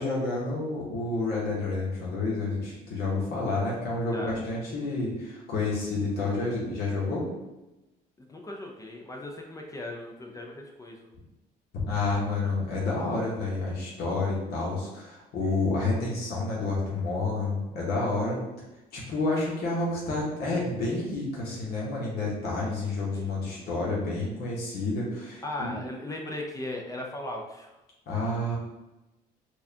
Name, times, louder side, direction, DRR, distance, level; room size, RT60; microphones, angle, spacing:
voice 1, 0.0-7.3 11.7-18.4 18.9-25.7 28.1-28.6, left 2 dB, 70° left, -4 dB, 1.1 m, -29 dB
voice 2, 8.2-11.1 23.1-23.7 25.4-27.8, left 1 dB, 20° left, 1 dB, 0.5 m, -38 dB
4.5 x 2.3 x 2.7 m, 0.99 s
cardioid pair, 110°, 17 cm